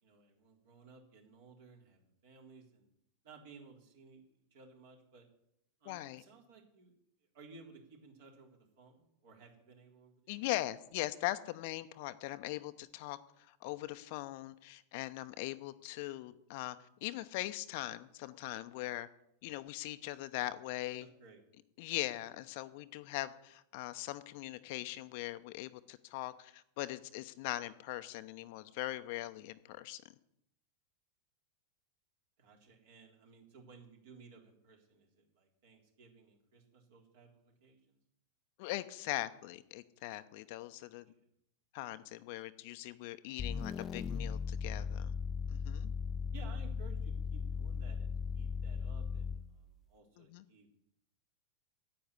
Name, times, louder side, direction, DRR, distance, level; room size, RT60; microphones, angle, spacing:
voice 1, 0.0-2.9 3.2-5.3 5.8-6.9 7.3-10.5 21.0-21.4 32.4-38.0 41.2-41.3 46.3-50.7, right 5 dB, 55° right, 1 dB, 3.7 m, -58 dB
voice 2, 5.9-6.2 10.3-13.2 13.5-16.8 17.0-19.1 19.4-21.1 21.8-30.0 38.6-41.0 41.7-45.1 45.5-45.9 50.2-50.4, left 17 dB, 50° left, 12 dB, 0.8 m, -41 dB
sound 1, 43.4-49.6, left 6 dB, 25° left, 0.4 m, -37 dB
9.9 x 9.0 x 9.7 m, 0.76 s
figure-of-eight pair, 90°, 0 cm